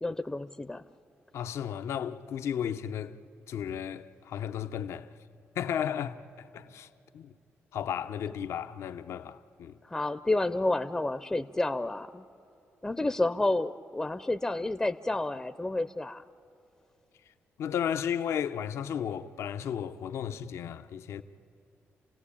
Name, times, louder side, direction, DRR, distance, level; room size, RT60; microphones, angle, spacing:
voice 1, 0.0-0.8 9.8-12.3 12.8-16.2, left 2 dB, 15° left, 0.6 m, -30 dB
voice 2, 1.3-3.2 3.5-5.1 5.6-6.9 7.1-7.3 7.7-9.8 17.6-21.2, left 9 dB, 80° left, 0.8 m, -34 dB
28.5 x 17.0 x 8.6 m
cardioid pair, 95°, 5 cm